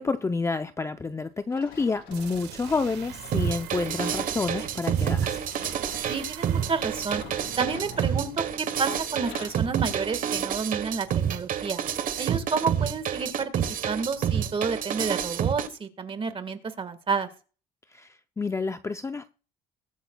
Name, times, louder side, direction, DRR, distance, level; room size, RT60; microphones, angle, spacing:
voice 1, 0.0-5.5 17.9-18.1 18.4-19.3, left 4 dB, 15° left, 0.5 m, -29 dB
sound 1, 1.5-6.2 7.0-8.8 9.1-9.7 10.3-10.5 11.2-11.3, left 6 dB, 85° left, 5.2 m, -48 dB
sound 2, 2.1-9.7, right 10 dB, 80° right, 1.6 m, -44 dB
sound 3, 3.3-15.7, right 9 dB, 55° right, 1.2 m, -28 dB
voice 2, 6.1-7.2 7.6-11.8 12.2-13.5 13.9-17.3, right 5 dB, 30° right, 1.5 m, -30 dB
21.5 x 8.3 x 2.3 m
cardioid pair, 110°, 17 cm